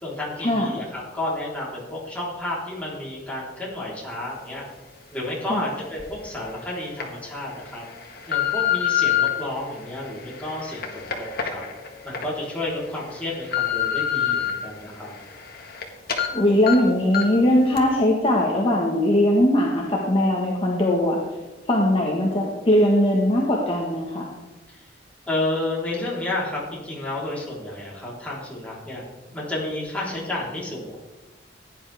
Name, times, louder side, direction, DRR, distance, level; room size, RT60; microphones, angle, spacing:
voice 1, 0.0-4.6 5.1-7.8 8.3-11.6 12.0-15.1 24.7-24.8 25.3-29.0 29.3-31.0, left 1 dB, 10° left, -6 dB, 3.8 m, -31 dB
sound 1, 6.0-6.1 6.7-7.0 7.7-9.3 9.9-12.2 12.7-12.8 13.2-14.5 14.9-15.8 16.1-16.3 16.7-16.8 17.1-17.4 17.8-17.9, left 10 dB, 55° left, 1.6 m, -26 dB
voice 2, 16.3-21.2 21.7-24.3, left 1 dB, 30° left, -2 dB, 1.5 m, -20 dB
16.0 x 10.0 x 3.5 m, 1.1 s
head